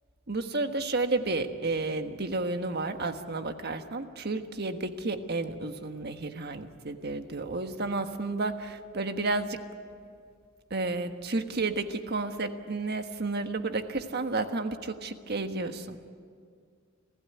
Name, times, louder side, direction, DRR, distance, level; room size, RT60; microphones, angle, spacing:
voice 1, 0.3-9.6 10.7-16.0, right 3 dB, 55° right, 7 dB, 1.4 m, -31 dB
28.5 x 16.0 x 9.6 m, 2.1 s
head